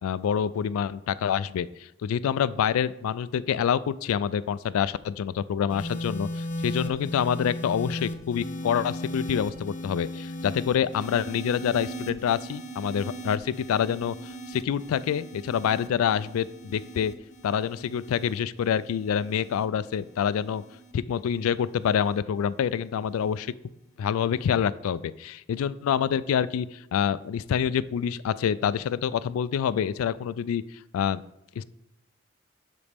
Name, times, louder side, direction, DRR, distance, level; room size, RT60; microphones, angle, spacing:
voice 1, 0.0-17.1 17.4-20.6 20.9-23.5 24.0-30.6 30.9-31.2 31.6-31.7, left 8 dB, 90° left, 17 dB, 0.3 m, -27 dB
sound 1, 5.7-22.2 23.1-23.4, equal, 35° left, 0.6 m, -38 dB
12.0 x 4.1 x 3.4 m, 0.89 s
head